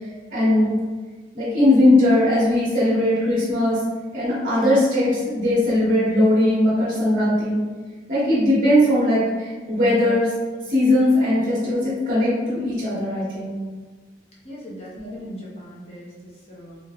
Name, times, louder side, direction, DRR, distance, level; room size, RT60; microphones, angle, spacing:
voice 1, 0.3-0.7 1.3-3.8 4.1-7.6 8.1-10.3 10.7-13.6 15.0-15.2, left 1 dB, 45° right, -10 dB, 1.0 m, -19 dB
voice 2, 14.4-16.8, equal, 35° left, -6 dB, 0.7 m, -39 dB
3.3 x 2.6 x 2.3 m, 1.4 s
head